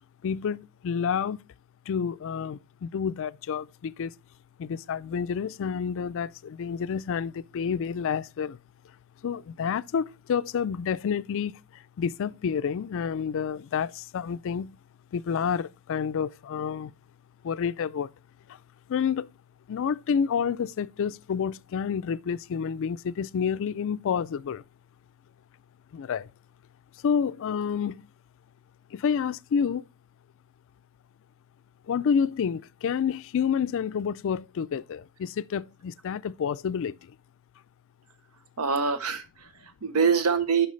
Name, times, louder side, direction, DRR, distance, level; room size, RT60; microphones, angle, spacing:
voice 1, 0.2-1.4 1.9-4.1 4.6-8.6 9.2-14.8 15.1-16.9 17.4-18.1 18.5-18.6 18.9-19.3 19.7-24.6 25.9-26.3 27.0-28.1 28.9-29.8 31.9-37.2, left 7 dB, 65° left, 0.4 m, -29 dB
voice 2, 38.6-40.7, right 5 dB, 85° right, 0.8 m, -25 dB
9.4 x 5.8 x 3.1 m
head